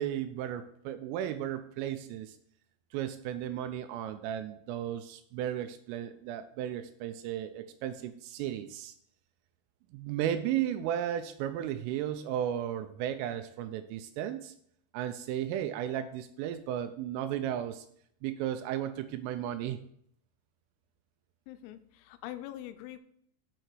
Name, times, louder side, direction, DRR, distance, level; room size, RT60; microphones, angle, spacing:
voice 1, 0.0-2.4 2.9-8.9 9.9-14.5 14.9-17.9 18.2-19.8, right 11 dB, 85° right, 10 dB, 3.0 m, -34 dB
voice 2, 21.5-23.0, left 13 dB, 85° left, 11 dB, 3.2 m, -43 dB
9.1 x 4.9 x 4.6 m, 0.66 s
omnidirectional pair, 6.0 m